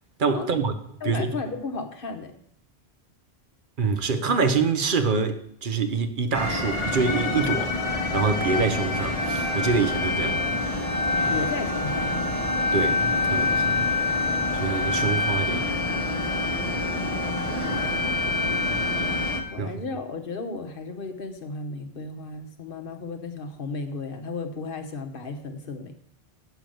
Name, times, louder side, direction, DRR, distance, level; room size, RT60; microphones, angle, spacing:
voice 1, 0.2-0.8 1.0-1.3 3.8-10.4 11.2-11.4 12.7-13.9 14.5-15.7 17.7-17.9 19.6-19.8, right 5 dB, 50° right, 1.0 m, -26 dB
voice 2, 1.0-2.3 11.3-12.2 16.6-17.8 19.5-25.9, left 4 dB, 55° left, 1.2 m, -34 dB
sound 1, 6.3-19.4, left 2 dB, 35° left, 1.3 m, -26 dB
7.2 x 6.9 x 7.6 m
omnidirectional pair, 1.1 m